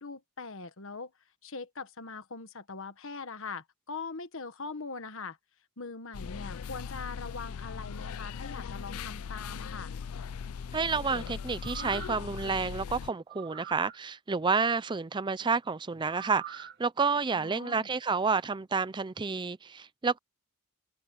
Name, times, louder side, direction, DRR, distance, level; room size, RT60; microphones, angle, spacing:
voice 1, 0.0-1.1 1.4-5.4 5.8-10.0 17.3-17.9, left 4 dB, 65° left, 1.4 m, -41 dB
sound 1, 6.1-13.1, left 6 dB, 80° left, 0.4 m, -39 dB
voice 2, 10.7-20.2, right 4 dB, 20° right, 0.4 m, -30 dB
sound 2, 11.5-12.3 13.3-14.0 16.1-16.8 17.2-17.3, right 8 dB, 50° right, 1.1 m, -43 dB
open air
head